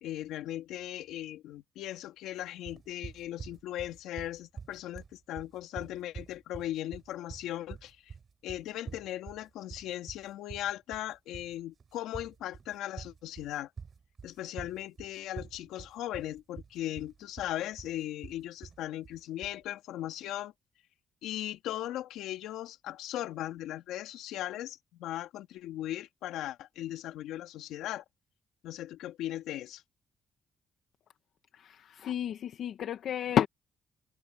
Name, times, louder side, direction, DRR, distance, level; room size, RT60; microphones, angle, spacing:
voice 1, 0.0-8.1 8.4-13.7 14.2-20.5 21.2-28.0 28.6-29.8, left 13 dB, 90° left, 3.2 m, -38 dB
sound 1, 2.7-19.6, right 5 dB, 40° right, 4.5 m, -46 dB
voice 2, 31.5-33.5, left 10 dB, 70° left, 1.1 m, -30 dB
cardioid pair, 90°, 0 cm